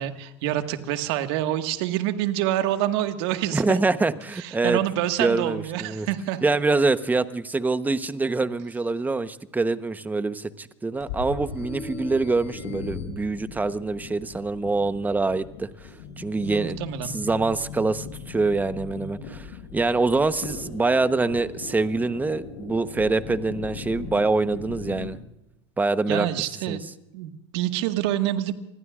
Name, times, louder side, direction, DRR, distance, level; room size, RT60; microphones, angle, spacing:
voice 1, 0.0-3.8 4.4-6.4 16.4-17.1 26.1-26.8 27.1-28.5, right 13 dB, 65° right, 7 dB, 1.7 m, -27 dB
voice 2, 3.5-4.8 5.2-6.1 6.4-15.7 16.2-16.8 17.1-19.5 19.7-25.2 25.8-26.3 26.7-26.8, right 3 dB, 10° right, 12 dB, 1.0 m, -25 dB
sound 1, 11.0-25.1, left 5 dB, 70° left, 7.0 m, -38 dB
28.0 x 20.5 x 2.5 m, 0.89 s
hypercardioid pair, 95°, 15 cm